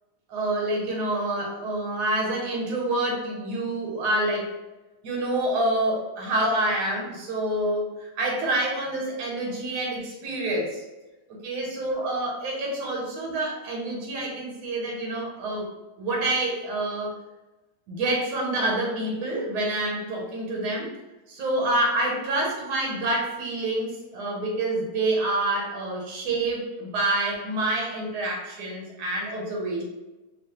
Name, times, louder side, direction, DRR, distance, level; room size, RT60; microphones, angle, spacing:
voice 1, 0.3-4.5 5.0-10.8 11.4-15.6 16.0-17.1 17.9-20.9 21.3-29.8, right 1 dB, 90° right, -1 dB, 1.2 m, -27 dB
2.9 x 2.2 x 2.7 m, 1.1 s
omnidirectional pair, 1.7 m